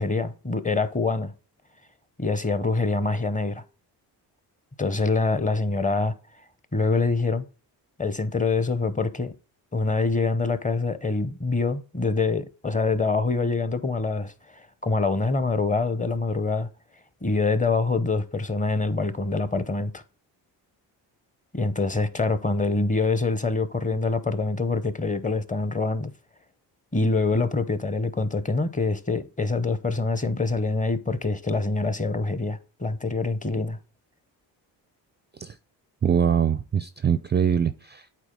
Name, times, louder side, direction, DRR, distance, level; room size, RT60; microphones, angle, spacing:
voice 1, 0.0-1.3 2.2-3.6 4.8-6.1 6.7-7.5 8.0-9.3 9.7-16.7 17.2-20.0 21.5-26.1 26.9-33.8, left 3 dB, 15° left, 0.7 m, -25 dB
voice 2, 36.0-38.2, right 7 dB, 25° right, 0.4 m, -23 dB
8.3 x 4.0 x 3.8 m
cardioid pair, 80°, 44 cm